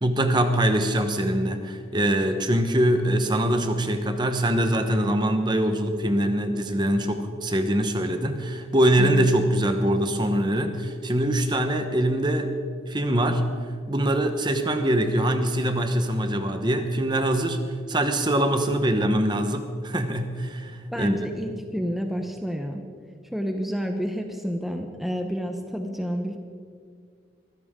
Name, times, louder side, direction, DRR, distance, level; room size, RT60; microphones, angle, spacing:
voice 1, 0.0-12.5 12.9-13.5 13.9-17.6 17.9-21.3, right 1 dB, 25° right, 7 dB, 1.1 m, -23 dB
voice 2, 20.9-22.8 23.3-26.4, equal, ahead, 3 dB, 0.9 m, -29 dB
22.5 x 15.5 x 3.8 m, 2.1 s
head